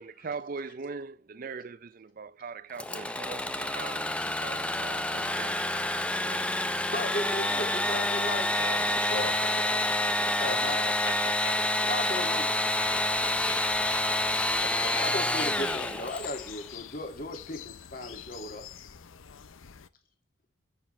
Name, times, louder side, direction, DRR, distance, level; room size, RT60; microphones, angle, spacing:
voice 1, 0.0-5.7 6.0-6.6, right 4 dB, 45° right, 0.5 m, -41 dB
Engine / Sawing, 2.8-16.5, left 1 dB, 5° left, 0.6 m, -28 dB
voice 2, 6.9-8.5 10.3-10.9 11.9-12.5 14.9-18.7, left 1 dB, 45° left, 2.4 m, -36 dB
voice 3, 8.2-11.6 12.3-12.6, left 2 dB, 65° left, 4.2 m, -42 dB
sound 1, 12.8-19.9, left 10 dB, 85° left, 0.7 m, -44 dB
10.0 x 8.6 x 3.2 m
head